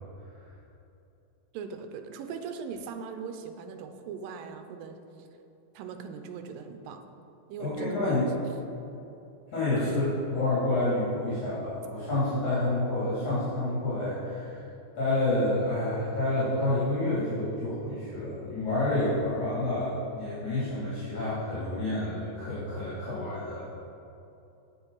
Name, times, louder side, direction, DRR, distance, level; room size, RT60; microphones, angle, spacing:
voice 1, 1.5-5.3 5.7-7.0 7.5-8.2 9.8-10.0, right 6 dB, 90° right, 7 dB, 2.4 m, -39 dB
voice 2, 7.6-8.2 9.5-14.6 14.9-23.7, left 2 dB, 60° left, -10 dB, 4.1 m, -29 dB
9.7 x 7.0 x 5.6 m, 2.8 s
omnidirectional pair, 4.0 m